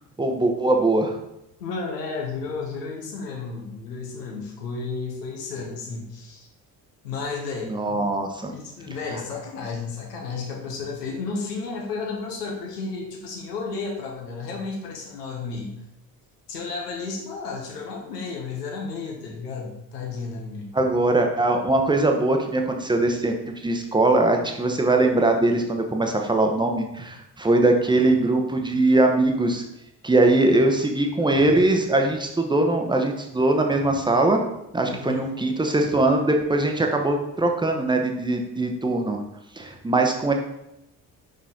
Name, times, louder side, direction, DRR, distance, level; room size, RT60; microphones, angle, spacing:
voice 1, 0.2-1.2 7.7-8.5 20.7-23.4 23.6-29.6 30.0-34.4 34.7-39.2 39.6-40.3, right 2 dB, 10° right, 3 dB, 1.0 m, -21 dB
voice 2, 1.6-6.5 7.0-8.1 8.5-15.7 16.5-20.7 34.8-35.3, left 4 dB, 75° left, 1 dB, 1.3 m, -33 dB
5.6 x 5.2 x 3.8 m, 0.86 s
figure-of-eight pair, 50°, 48 cm